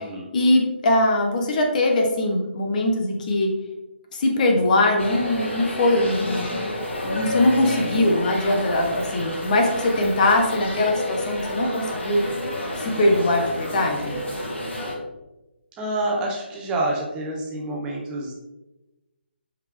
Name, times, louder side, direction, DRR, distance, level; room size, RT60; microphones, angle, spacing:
voice 1, 0.3-3.5 4.1-6.6 7.0-12.2 12.8-14.1, left 1 dB, 40° left, 2 dB, 1.3 m, -21 dB
sound 1, 5.0-14.9, left 1 dB, 85° left, 2.4 m, -30 dB
voice 2, 15.8-18.3, right 2 dB, 15° right, -2 dB, 1.1 m, -27 dB
8.0 x 5.1 x 3.6 m, 1.0 s
hypercardioid pair, 155°, 6 cm